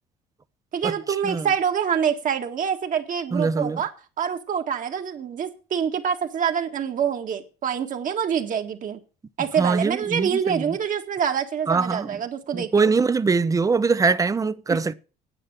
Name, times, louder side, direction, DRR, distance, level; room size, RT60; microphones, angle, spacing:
voice 1, 0.7-3.9 4.2-9.0 9.4-12.9 14.7-14.8, right 8 dB, 50° right, 1.9 m, -26 dB
voice 2, 3.3-3.8 9.6-10.8 11.7-12.2 12.5-14.9, right 4 dB, 20° right, 0.7 m, -22 dB
9.9 x 8.8 x 7.3 m
cardioid pair, 110°, 17 cm